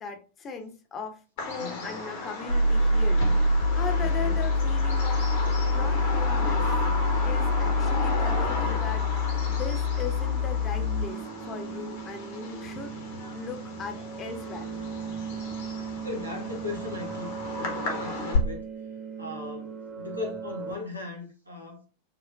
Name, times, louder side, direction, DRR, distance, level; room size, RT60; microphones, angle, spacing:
voice 1, 0.0-6.7 7.2-12.9 13.3-14.7, left 5 dB, 25° left, 0.6 m, -39 dB
Bird vocalization bird call bird song, 1.4-18.4, left 3 dB, 55° left, 0.9 m, -35 dB
voice 2, 1.6-1.9 4.0-4.3 15.8-18.6 19.2-21.9, left 3 dB, 80° right, 0.7 m, -38 dB
sound 1, 2.5-11.0, left 2 dB, 80° left, 1.8 m, -25 dB
sound 2, 10.7-20.7, right 6 dB, 15° right, 0.7 m, -38 dB
4.5 x 2.1 x 2.4 m
figure-of-eight pair, 90°, 0 cm